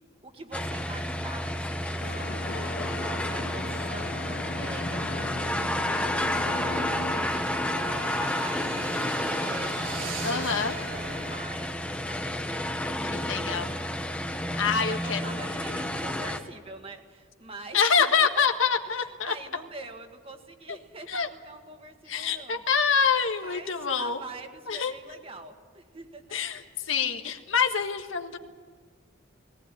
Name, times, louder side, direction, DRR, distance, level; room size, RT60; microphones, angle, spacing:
voice 1, 0.2-13.8 14.9-18.1 18.9-22.6 23.4-26.2, right 2 dB, 30° right, 4 dB, 1.9 m, -45 dB
sound 1, 0.5-16.4, left 1 dB, 5° left, 1.2 m, -31 dB
sound 2, 2.0-7.2, left 3 dB, 50° left, 0.8 m, -38 dB
sound 3, 6.1-11.4, right 3 dB, 80° right, 3.2 m, -39 dB
voice 2, 10.2-10.8 13.1-13.7 14.6-15.8 17.7-19.3 21.1-21.3 22.1-24.2 24.7-24.9 26.3-28.4, left 6 dB, 85° left, 5 dB, 1.6 m, -26 dB
19.0 x 18.5 x 10.0 m, 1.5 s
head